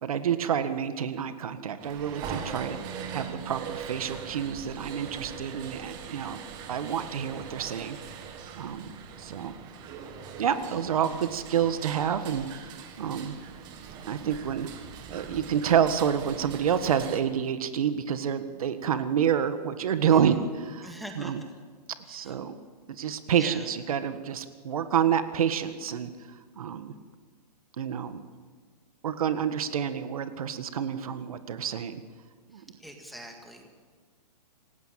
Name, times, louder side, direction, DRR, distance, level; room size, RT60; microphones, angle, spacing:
voice 1, 0.0-2.8 3.1-6.4 6.7-8.0 8.5-9.5 10.4-13.4 14.1-14.7 15.1-21.4 22.1-22.6 22.9-26.1 26.6-26.9 27.8-28.2 29.0-32.0 32.5-32.6, right 8 dB, 55° right, 10 dB, 1.6 m, -28 dB
sound 1, 1.8-17.2, right 6 dB, 20° right, 1.7 m, -41 dB
voice 2, 20.1-20.4 20.8-21.4 22.1-22.3 23.0-23.7 32.8-33.7, equal, ahead, 1 dB, 1.9 m, -44 dB
27.0 x 19.0 x 7.6 m, 1.5 s
hypercardioid pair, 165°, 21 cm